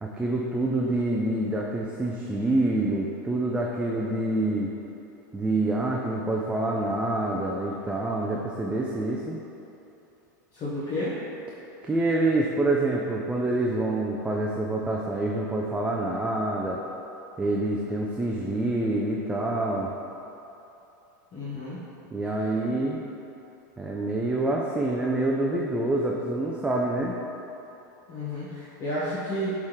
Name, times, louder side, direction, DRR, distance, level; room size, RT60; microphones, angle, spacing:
voice 1, 0.0-4.7 5.3-9.4 11.8-16.8 17.4-19.9 22.1-23.0 23.8-27.1, right 2 dB, 10° right, -2 dB, 0.5 m, -26 dB
voice 2, 10.5-11.1 21.3-21.8 28.1-29.5, left 1 dB, 40° left, -11 dB, 1.5 m, -31 dB
8.1 x 3.7 x 3.2 m, 3.0 s
hypercardioid pair, 110°, 10 cm